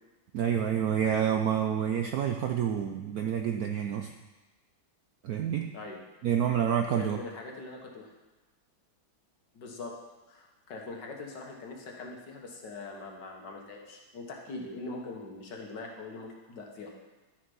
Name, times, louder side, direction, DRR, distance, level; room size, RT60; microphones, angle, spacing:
voice 1, 0.3-4.1 5.2-5.8 6.2-7.2, right 9 dB, 70° right, 4 dB, 0.9 m, -28 dB
voice 2, 7.0-8.1 9.5-10.0 10.3-16.9, left 3 dB, 60° left, 0 dB, 2.0 m, -42 dB
11.5 x 6.8 x 5.4 m, 1.2 s
omnidirectional pair, 2.2 m